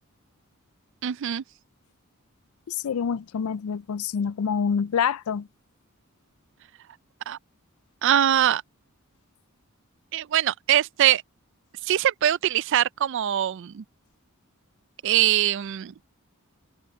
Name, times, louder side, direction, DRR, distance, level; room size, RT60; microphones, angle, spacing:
voice 1, 1.0-1.4 7.3-7.4 8.0-8.6 10.1-11.2 11.8-13.8 15.0-15.9, right 11 dB, 60° right, 0.3 m, -22 dB
voice 2, 2.7-5.5, left 7 dB, 85° left, 0.4 m, -26 dB
head